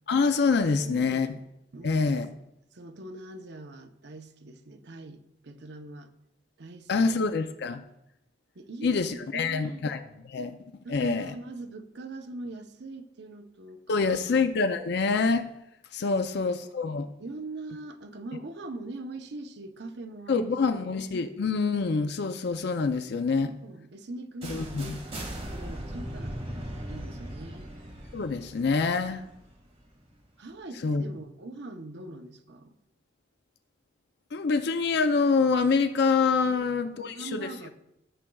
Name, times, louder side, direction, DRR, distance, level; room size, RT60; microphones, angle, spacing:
voice 1, 0.1-1.3 1.8-2.3 6.9-7.8 8.8-10.6 10.9-11.3 13.9-15.5 15.9-17.1 20.3-23.5 24.5-25.0 28.1-29.3 30.8-31.0 34.3-37.5, left 4 dB, 65° left, 9 dB, 0.5 m, -26 dB
voice 2, 0.7-1.3 1.7-2.0 2.7-6.1 6.6-7.2 8.5-9.0 9.3-9.8 10.8-14.4 16.1-16.6 17.2-21.0 23.3-26.4 26.9-27.7 30.4-32.8 36.4-37.7, right 2 dB, 65° right, 6 dB, 0.7 m, -42 dB
sound 1, 24.4-30.2, equal, 35° right, 1.8 m, -39 dB
14.0 x 7.4 x 2.3 m, 0.85 s
head